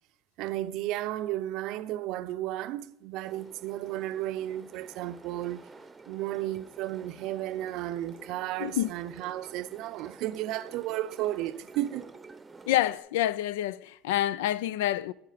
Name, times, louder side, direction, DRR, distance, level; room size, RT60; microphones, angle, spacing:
voice 1, 0.4-5.7 6.1-12.1, right 14 dB, 65° right, 0.5 m, -33 dB
sound 1, 3.2-13.0, right 4 dB, 15° right, 0.8 m, -50 dB
voice 2, 12.7-15.1, left 13 dB, 90° left, 0.3 m, -27 dB
13.0 x 4.8 x 5.0 m
supercardioid pair, 105°, 0 cm